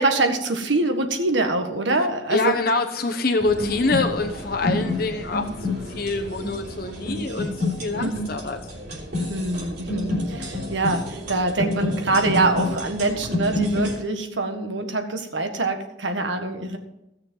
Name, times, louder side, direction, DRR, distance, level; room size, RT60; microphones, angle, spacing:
voice 1, 0.0-2.6 4.6-4.9 8.0-8.3 9.3-16.8, right 2 dB, 75° right, 6 dB, 1.6 m, -24 dB
voice 2, 2.3-8.6, left 3 dB, 50° left, 3 dB, 1.0 m, -25 dB
sound 1, 3.4-13.9, left 2 dB, 55° right, 3.4 m, -29 dB
16.5 x 6.6 x 5.5 m, 0.88 s
head